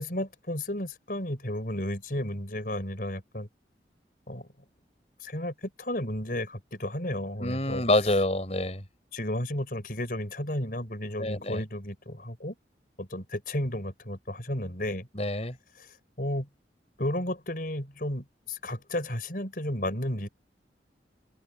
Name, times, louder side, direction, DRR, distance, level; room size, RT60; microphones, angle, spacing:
voice 1, 0.0-3.5 4.3-4.5 5.2-7.8 9.1-12.6 13.0-15.1 15.8-16.5 17.0-20.3, left 1 dB, 50° left, 5.4 m, -33 dB
voice 2, 7.4-8.8 11.2-11.6 15.1-15.6, left 1 dB, 35° left, 6.6 m, -27 dB
open air
head